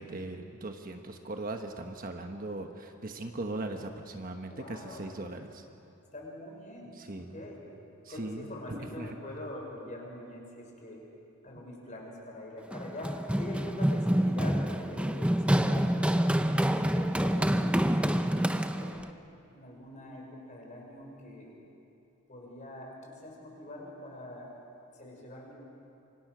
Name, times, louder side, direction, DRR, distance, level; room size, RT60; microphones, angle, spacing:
voice 1, 0.0-5.6 7.0-7.4 8.0-9.2, right 2 dB, 40° right, 4 dB, 1.3 m, -39 dB
voice 2, 4.5-5.1 6.1-7.6 8.1-11.0 11.4-16.4 16.9-19.1 19.5-21.5 22.3-24.5 24.9-25.5, left 1 dB, 35° left, -1 dB, 5.5 m, -44 dB
Run, 12.7-19.1, equal, 5° right, 0.6 m, -27 dB
27.5 x 25.0 x 6.2 m, 2.7 s
head